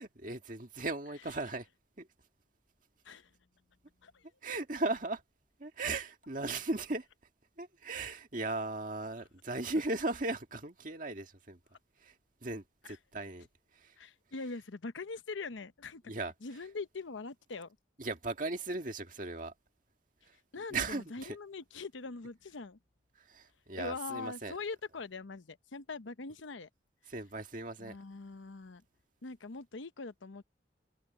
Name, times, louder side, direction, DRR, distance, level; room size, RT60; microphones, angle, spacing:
voice 1, 0.0-1.7 2.0-2.1 4.4-5.2 5.6-7.1 7.6-11.6 12.0-12.2 12.4-13.5 13.7-14.0 16.1-16.3 18.0-19.5 20.2-20.4 20.7-21.4 23.2-24.5 27.1-28.0, right 2 dB, 45° right, 1.9 m, -37 dB
voice 2, 3.0-3.4 4.0-4.3 9.2-9.3 12.9-13.0 14.0-16.0 16.4-17.8 20.2-22.8 23.8-26.7 27.0-27.1 27.8-28.8 29.2-30.4, left 3 dB, 90° left, 0.8 m, -43 dB
head